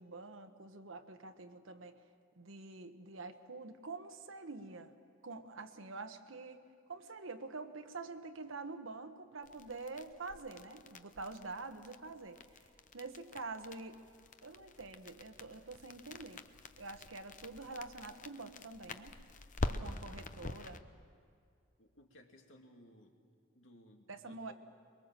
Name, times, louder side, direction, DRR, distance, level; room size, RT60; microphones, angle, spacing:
voice 1, 0.0-2.0 2.4-4.9 5.2-6.6 6.9-12.6 12.9-14.0 14.4-16.4 16.8-19.2 19.7-20.8 24.1-24.5, right 3 dB, 85° right, 7 dB, 1.3 m, -46 dB
sound 1, 9.4-20.8, left 2 dB, 40° left, 0.8 m, -46 dB
voice 2, 21.8-23.2 23.5-24.5, equal, 75° left, 3 dB, 2.3 m, -60 dB
23.0 x 22.0 x 7.5 m, 2.3 s
head